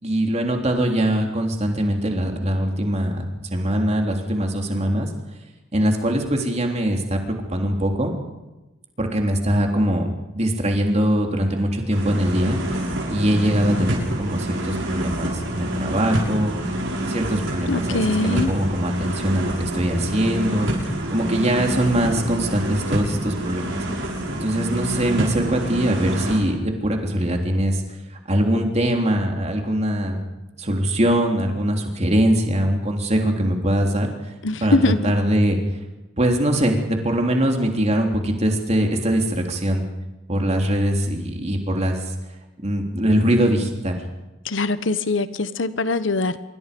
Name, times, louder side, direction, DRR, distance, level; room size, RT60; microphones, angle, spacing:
voice 1, 0.0-3.3 3.5-5.1 5.7-8.1 9.0-10.1 10.3-12.6 13.1-16.5 17.1-20.7 21.1-23.8 24.3-27.8 28.3-30.2 30.6-34.1 34.6-35.6 36.2-39.8 40.3-42.0 42.6-44.0, right 1 dB, 35° right, 2 dB, 3.5 m, -22 dB
sound 1, 11.9-26.4, right 1 dB, 85° right, 7.1 m, -27 dB
voice 2, 17.7-18.5 34.4-35.0 44.5-46.4, left 2 dB, 75° left, 13 dB, 1.1 m, -22 dB
26.5 x 23.0 x 5.3 m, 1.1 s
head